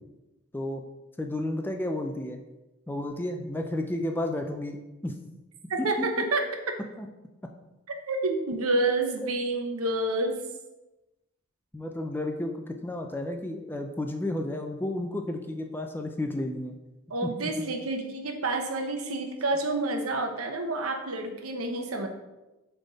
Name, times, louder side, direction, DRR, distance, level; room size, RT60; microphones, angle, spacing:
voice 1, 1.2-2.4 2.9-4.8 5.0-5.2 5.8-6.1 7.0-7.1 9.2-9.3 11.7-16.8 17.2-17.5, left 1 dB, 10° left, 4 dB, 0.4 m, -32 dB
voice 2, 5.7-6.5 8.1-10.4 17.1-22.1, right 2 dB, 85° right, 4 dB, 0.9 m, -28 dB
7.3 x 3.5 x 4.0 m, 1.0 s
head